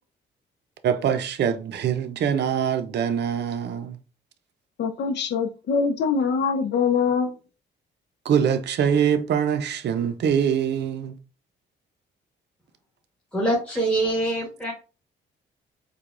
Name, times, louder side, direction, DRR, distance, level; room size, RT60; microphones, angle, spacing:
voice 1, 0.8-4.0 8.3-11.2, right 8 dB, 60° right, 0.6 m, -23 dB
voice 2, 4.8-7.4, left 5 dB, 60° left, 0.7 m, -23 dB
voice 3, 13.3-14.7, right 1 dB, 5° left, 1.2 m, -24 dB
4.6 x 2.3 x 2.5 m
cardioid pair, 90°, 20 cm